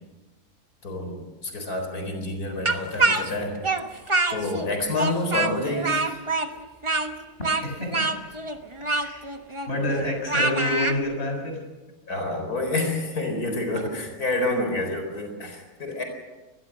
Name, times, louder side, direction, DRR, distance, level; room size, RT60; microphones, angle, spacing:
voice 1, 0.8-3.6 4.3-6.2 12.1-16.0, left 2 dB, 75° left, 4 dB, 4.9 m, -28 dB
Speech, 2.7-4.7 4.9-11.0, right 2 dB, 20° right, 1.1 m, -25 dB
voice 2, 7.6-8.1 9.0-9.2 9.7-11.6, left 1 dB, 40° left, 2 dB, 6.2 m, -28 dB
23.5 x 20.0 x 6.2 m, 1.2 s
omnidirectional pair, 1.6 m